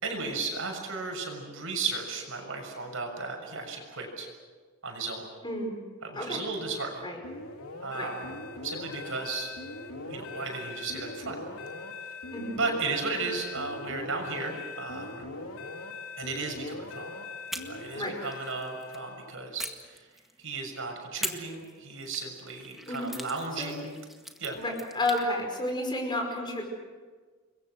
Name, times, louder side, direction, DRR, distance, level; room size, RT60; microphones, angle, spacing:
voice 1, 0.0-4.3 4.8-5.2 6.0-7.1 7.8-8.3 8.6-9.5 10.1-11.4 12.6-15.3 16.2-17.1 17.7-20.1 20.4-24.0 24.4-24.6, right 3 dB, 65° right, 2 dB, 6.5 m, -35 dB
voice 2, 5.4-5.8 6.1-6.4 7.0-7.2 7.9-8.1 12.3-12.5 17.9-18.2 22.9-23.1 23.6-23.7 24.5-26.6, left 1 dB, 20° left, 1 dB, 5.4 m, -31 dB
sound 1, 7.2-19.4, left 3 dB, 85° left, 3.1 m, -41 dB
sound 2, 17.5-19.0 19.6-20.6 21.2-25.3, equal, ahead, 1.8 m, -42 dB
29.5 x 22.5 x 6.3 m, 1.5 s
head